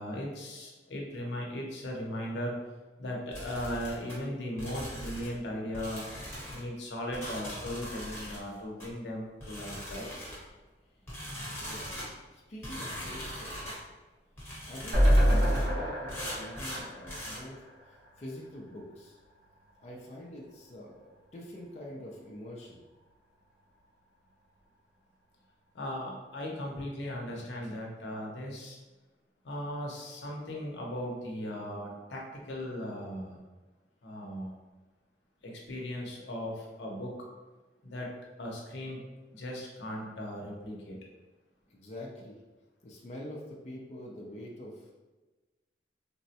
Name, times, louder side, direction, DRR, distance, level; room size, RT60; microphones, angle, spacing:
voice 1, 0.0-2.5 3.0-6.1 6.5-10.1 25.7-28.8 29.4-33.4 34.0-34.5 35.4-37.1 37.8-38.1 38.4-39.0 39.3-41.0, equal, 85° left, -1 dB, 0.7 m, -37 dB
sound 1, 3.3-4.2 4.6-5.4 5.7-6.6 7.1-8.4 8.8-8.9 9.4-10.5 11.1-12.1 12.6-13.8 14.4-15.7 16.1-17.4, equal, 15° left, 0.9 m, -41 dB
voice 2, 11.6-13.7 14.7-19.2 19.8-22.8 41.7-42.4 42.8-44.9, left 1 dB, 40° left, -2 dB, 0.4 m, -45 dB
sound 2, 14.9-18.2 18.5-18.6 18.9-19.0, equal, 65° right, 0.9 m, -26 dB
3.5 x 2.1 x 2.7 m, 1.2 s
head